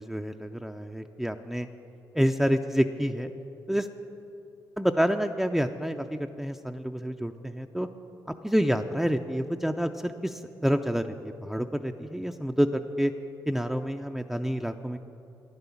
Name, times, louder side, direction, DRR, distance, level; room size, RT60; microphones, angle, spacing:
voice 1, 0.0-1.7 2.1-3.3 3.7-3.9 4.8-7.9 8.4-13.1 13.5-15.0, equal, 5° right, 5 dB, 0.5 m, -28 dB
10.5 x 10.5 x 7.2 m, 2.7 s
cardioid pair, 65°, 8 cm